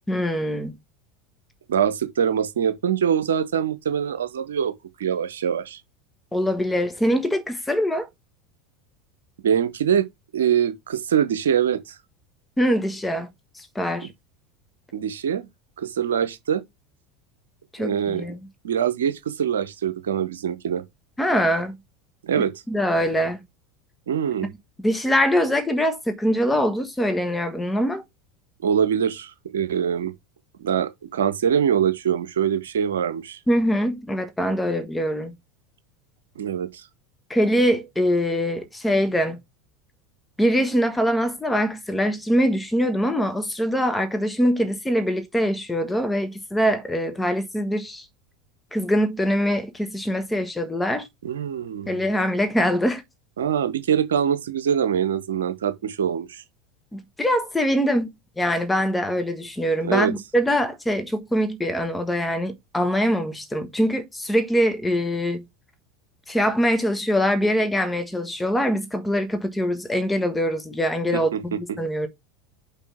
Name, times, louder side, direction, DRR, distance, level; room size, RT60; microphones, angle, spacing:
voice 1, 0.1-0.8 6.3-8.1 12.6-13.3 13.6-14.1 17.7-18.4 21.2-21.7 22.4-23.4 24.8-28.0 33.5-35.4 37.3-39.4 40.4-48.0 48.7-51.1 51.9-53.0 56.9-58.1 58.4-65.4 66.3-72.1, equal, 10° left, 1.5 m, -23 dB
voice 2, 1.7-4.7 5.0-5.8 9.4-10.0 10.3-11.9 14.9-15.5 15.8-16.6 17.8-18.2 18.6-20.8 22.2-22.5 24.1-24.5 28.6-30.1 30.6-33.4 36.4-36.8 51.2-52.0 53.4-56.4 59.8-60.1 71.1-71.4, right 8 dB, 70° right, 0.9 m, -23 dB
5.6 x 4.8 x 5.9 m
figure-of-eight pair, 75°, 0 cm